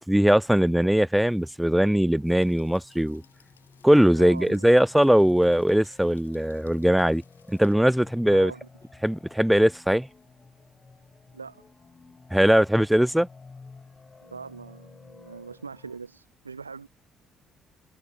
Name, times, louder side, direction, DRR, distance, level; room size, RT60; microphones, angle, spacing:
voice 1, 0.1-3.2 3.8-7.2 7.5-8.5 9.0-10.1 12.3-13.3, equal, 5° right, 0.4 m, -20 dB
sound 1, 1.3-16.0, left 4 dB, 30° left, 1.4 m, -52 dB
sound 2, 2.2-7.8, left 8 dB, 85° left, 2.5 m, -63 dB
voice 2, 4.2-4.7 8.3-8.7 11.3-11.6 14.2-16.9, right 5 dB, 90° right, 0.5 m, -41 dB
figure-of-eight pair, 45°, 0 cm